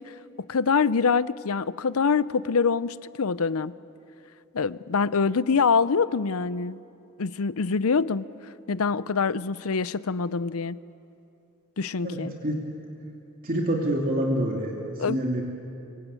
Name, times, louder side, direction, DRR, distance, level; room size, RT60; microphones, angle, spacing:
voice 1, 0.0-3.7 4.5-6.8 7.2-8.3 8.7-10.8 11.8-12.3 15.0-15.2, left 5 dB, 75° left, 17 dB, 0.6 m, -25 dB
voice 2, 12.0-12.6 13.4-15.4, right 1 dB, 40° right, -1 dB, 2.8 m, -27 dB
24.5 x 23.5 x 9.0 m, 2.7 s
head